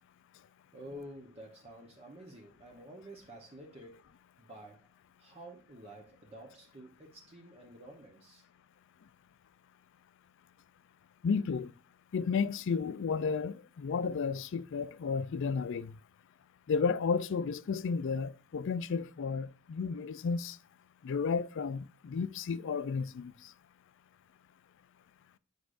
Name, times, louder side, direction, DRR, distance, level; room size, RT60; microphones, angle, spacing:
voice 1, 0.7-4.1 4.4-4.9 5.2-8.4, equal, 30° right, 0.9 m, -50 dB
voice 2, 11.2-11.7 12.1-15.9 16.7-20.6 21.0-23.3, left 5 dB, 60° left, 0.4 m, -32 dB
8.1 x 4.9 x 2.5 m
head